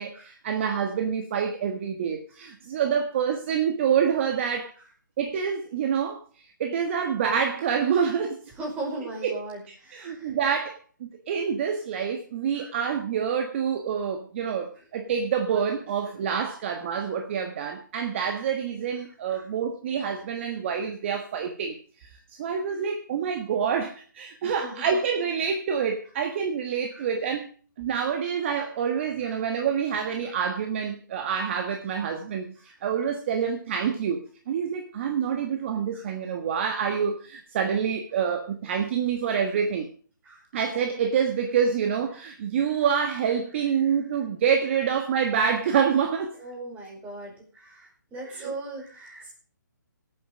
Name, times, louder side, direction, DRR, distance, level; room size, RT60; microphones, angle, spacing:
voice 1, 0.0-4.7 5.2-8.5 9.2-9.4 9.7-10.8 11.1-27.5 27.8-39.9 40.5-46.3 48.2-48.5, right 7 dB, 35° right, 5 dB, 1.5 m, -27 dB
voice 2, 8.6-10.3 12.6-12.7 19.3-19.5 24.4-24.9 26.9-27.1 29.2-29.3 35.9-36.1 39.3-39.4 40.2-40.4 46.4-49.3, right 2 dB, 15° right, -1 dB, 5.2 m, -38 dB
17.5 x 8.7 x 5.1 m, 0.43 s
figure-of-eight pair, 150°, 11 cm